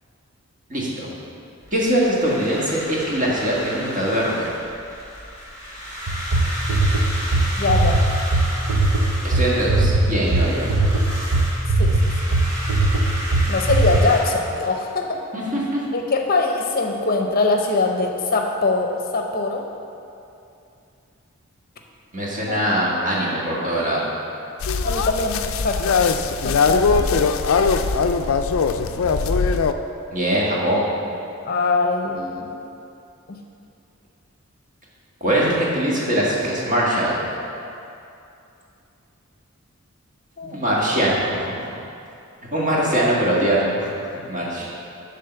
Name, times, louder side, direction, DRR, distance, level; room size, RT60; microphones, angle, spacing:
voice 1, 0.7-1.1 1.7-4.5 9.2-10.8 15.3-15.8 22.1-24.0 30.1-30.9 35.2-37.2 40.5-41.6 42.5-44.7, right 1 dB, 40° right, -5 dB, 1.7 m, -22 dB
sound 1, 1.6-14.2, equal, 15° right, 2.1 m, -33 dB
sound 2, 6.1-14.0, right 2 dB, 80° right, 0.7 m, -19 dB
voice 2, 7.6-8.0 11.8-12.0 12.2-12.3 13.5-15.2 15.9-19.6 22.5-22.6 24.8-26.0 26.4-27.2 31.5-32.6 33.3-33.4 40.4-40.6 44.6-44.7, left 3 dB, 45° left, 2 dB, 0.7 m, -22 dB
sound 3, 24.6-29.7, left 5 dB, 80° left, 0.4 m, -20 dB
10.0 x 3.8 x 6.8 m, 2.6 s
head